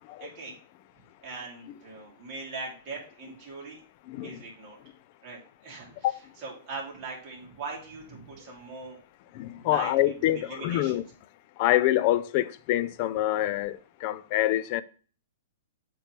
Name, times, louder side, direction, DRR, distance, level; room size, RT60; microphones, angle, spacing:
voice 1, 0.2-0.5 1.2-3.8 4.2-4.8 5.2-6.1 6.4-9.0 9.6-10.2 10.5-11.0, right 4 dB, 35° right, 2.5 m, -40 dB
voice 2, 4.1-4.4 6.0-6.1 9.3-11.0 11.6-14.8, left 14 dB, 40° left, 0.4 m, -26 dB
8.1 x 3.2 x 5.9 m
hypercardioid pair, 160°, 0 cm